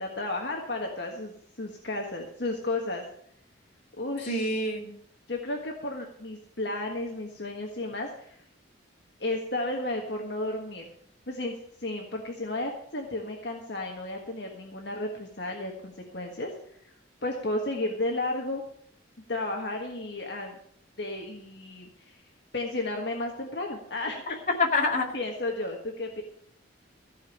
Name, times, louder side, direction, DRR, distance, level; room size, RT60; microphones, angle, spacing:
voice 1, 0.0-3.0 4.0-4.7 5.3-8.4 9.2-10.9 11.3-16.5 17.2-18.6 19.3-20.6 21.0-22.2 22.5-24.6 25.1-26.2, left 2 dB, 55° left, 1 dB, 1.5 m, -33 dB
voice 2, 4.3-4.9 24.6-25.1, left 2 dB, 40° left, 1 dB, 2.2 m, -26 dB
15.0 x 5.3 x 8.6 m, 0.67 s
head